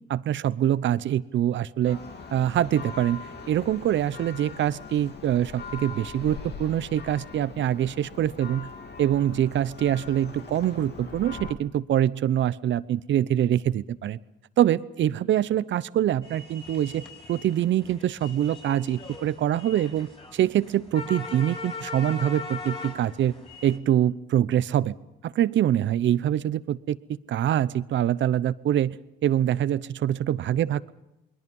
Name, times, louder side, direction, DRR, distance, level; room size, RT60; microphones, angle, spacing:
voice 1, 0.1-2.0 2.3-8.7 9.0-14.2 14.6-17.0 17.3-23.3 23.6-25.0 25.2-29.0 29.2-30.9, right 11 dB, 65° right, 17 dB, 0.8 m, -24 dB
Church bell, 1.8-11.5, left 4 dB, 55° left, 2.9 m, -41 dB
sound 1, 16.2-23.8, left 3 dB, 25° left, 6.5 m, -40 dB
29.0 x 21.5 x 5.5 m, 0.93 s
supercardioid pair, 60°, 21 cm